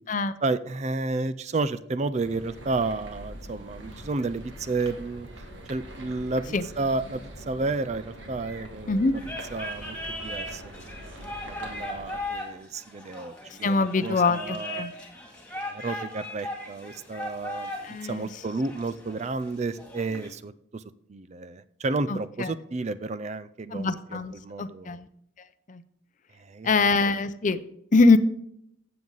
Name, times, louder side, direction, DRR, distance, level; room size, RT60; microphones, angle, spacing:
voice 1, 0.4-5.3 5.7-9.2 9.5-10.0 10.2-14.8 15.6-17.7 18.0-20.8 21.1-25.0 26.4-26.7 27.0-27.1, right 3 dB, 35° right, 15 dB, 0.4 m, -32 dB
sound 1, 2.1-12.2, right 1 dB, 65° right, 2.1 m, -43 dB
sound 2, 9.1-20.3, left 1 dB, 5° left, 2.2 m, -38 dB
voice 2, 13.6-14.9 17.8-18.3 22.1-22.5 23.7-25.0 25.7-25.8 26.6-27.6 27.9-28.2, left 3 dB, 40° left, 12 dB, 0.6 m, -23 dB
14.5 x 7.7 x 3.9 m, 0.72 s
head